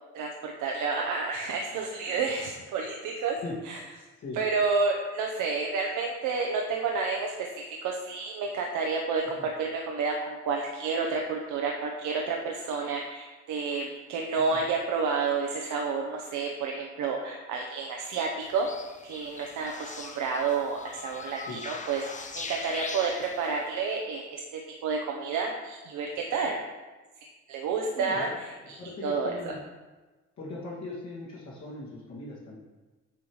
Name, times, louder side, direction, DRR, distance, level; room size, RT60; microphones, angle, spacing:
voice 1, 0.1-3.4 3.6-3.8 4.3-18.7 19.0-26.6 27.5-29.3, right 4 dB, 85° right, 1 dB, 0.8 m, -30 dB
sound 1, 18.4-23.8, left 4 dB, 25° left, 0.6 m, -41 dB
voice 2, 27.9-28.4 28.8-29.6 30.4-32.6, left 2 dB, 65° left, -7 dB, 2.2 m, -39 dB
8.3 x 3.2 x 5.4 m, 1.2 s
cardioid pair, 90°, 30 cm